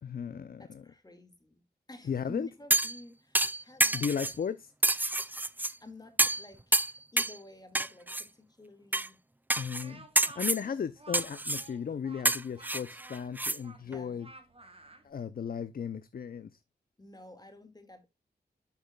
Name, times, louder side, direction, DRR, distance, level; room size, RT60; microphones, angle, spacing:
voice 1, 0.0-0.8 2.0-2.5 3.9-4.7 9.6-14.3 15.0-16.6, left 7 dB, 60° left, 0.5 m, -36 dB
voice 2, 0.6-1.6 1.9-4.1 5.2-5.4 5.8-9.2 13.8-14.2 17.0-18.1, left 1 dB, 25° left, 2.0 m, -51 dB
sound 1, 2.7-3.0 3.3-4.4 4.8-5.7 6.2-6.4 6.7-7.4 7.7-8.2 8.9-9.1 9.5-9.8 10.1-10.6 11.1-11.7 12.2-13.6 13.9-14.0, right 2 dB, 10° right, 0.4 m, -28 dB
Speech, 9.7-15.1, right 3 dB, 35° right, 1.6 m, -53 dB
11.5 x 6.0 x 2.3 m
wide cardioid pair, 90°, 17 cm